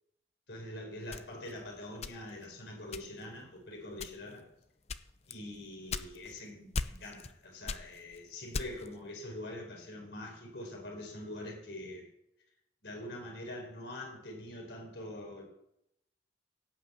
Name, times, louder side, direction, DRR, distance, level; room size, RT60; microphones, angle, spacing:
voice 1, 0.5-4.5 5.3-12.0 12.8-15.4, left 1 dB, 75° left, 0 dB, 4.7 m, -44 dB
sound 1, 1.1-2.5 2.9-3.4 3.9-4.4 4.9-6.4 6.7-7.4 7.6-9.0, left 4 dB, 35° left, 0.6 m, -38 dB
17.0 x 6.0 x 8.2 m, 0.80 s
head